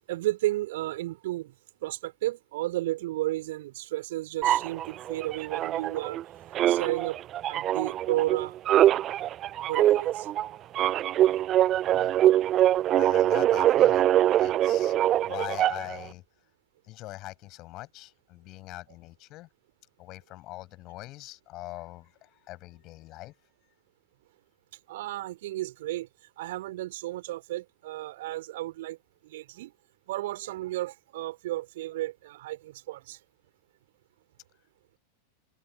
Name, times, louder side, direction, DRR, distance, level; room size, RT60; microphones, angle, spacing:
voice 1, 0.1-1.5 1.8-6.2 6.7-7.2 7.5-8.6 9.6-10.3 24.9-26.1 26.4-29.0 29.2-29.7 30.1-33.2, right 16 dB, 55° right, 2.6 m, -33 dB
sound 1, 4.4-6.2 6.5-16.0, right 12 dB, 30° right, 0.4 m, -23 dB
voice 2, 11.9-12.2 13.0-14.1 14.4-15.0 15.2-16.2 16.8-19.5 20.0-23.4 23.6-23.7, left 18 dB, 40° left, 5.9 m, -42 dB
open air
figure-of-eight pair, 90°, 0 cm